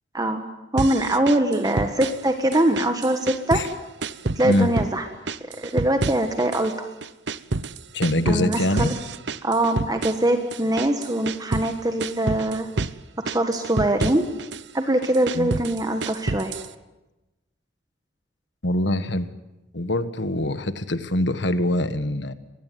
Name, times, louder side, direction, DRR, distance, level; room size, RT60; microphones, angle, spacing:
voice 1, 0.7-3.6 4.4-5.0 5.6-6.9 8.3-8.9 9.4-12.7 13.3-14.2 14.7-16.5, right 1 dB, 20° right, 6 dB, 1.5 m, -22 dB
sound 1, 0.8-2.3 2.5-3.7 4.0-4.9 5.3-6.7 7.0-11.7 12.0-13.0 13.3-14.6 15.0-16.7, right 3 dB, 65° right, 0.9 m, -29 dB
voice 2, 7.9-8.9 15.3-15.6 18.6-19.3 19.7-22.3, left 1 dB, 65° left, 11 dB, 1.6 m, -24 dB
24.5 x 20.5 x 9.4 m, 1.0 s
head